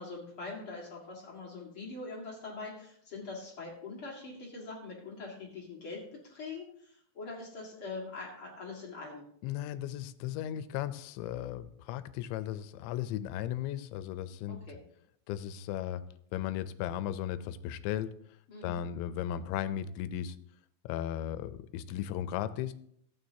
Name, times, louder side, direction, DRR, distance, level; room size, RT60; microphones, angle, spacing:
voice 1, 0.0-9.2 14.5-14.8 18.5-18.8, left 3 dB, 50° left, -3 dB, 1.7 m, -43 dB
voice 2, 9.4-14.7 15.3-16.1 16.3-18.2 18.6-20.4 20.8-22.7, left 11 dB, 85° left, 13 dB, 2.9 m, -36 dB
14.5 x 9.5 x 2.8 m, 0.67 s
omnidirectional pair, 5.3 m